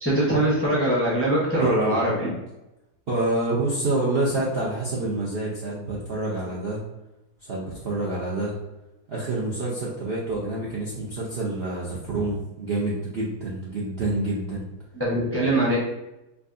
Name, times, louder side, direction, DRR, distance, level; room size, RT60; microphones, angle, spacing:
voice 1, 0.0-2.3 14.9-15.8, right 1 dB, 15° left, -6 dB, 0.5 m, -22 dB
voice 2, 1.6-2.0 3.1-6.8 7.4-8.5 9.1-14.7, right 2 dB, 55° right, -6 dB, 0.6 m, -27 dB
4.6 x 2.6 x 2.5 m, 0.95 s
omnidirectional pair, 1.8 m